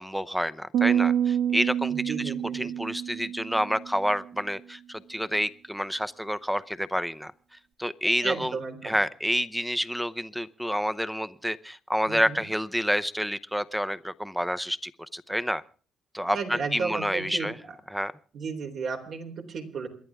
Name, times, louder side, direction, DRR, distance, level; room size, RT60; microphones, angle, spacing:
voice 1, 0.0-2.1 2.5-7.3 7.8-8.5 8.8-15.6 16.1-17.5 17.9-18.1, equal, ahead, 15 dB, 0.8 m, -29 dB
sound 1, 0.7-4.1, right 9 dB, 85° right, 1.8 m, -27 dB
voice 2, 1.9-2.7 8.2-9.0 12.1-12.4 16.3-17.8 18.3-19.9, right 5 dB, 65° right, 3 dB, 3.7 m, -34 dB
28.0 x 11.0 x 3.6 m, 0.43 s
cardioid pair, 90°, 0 cm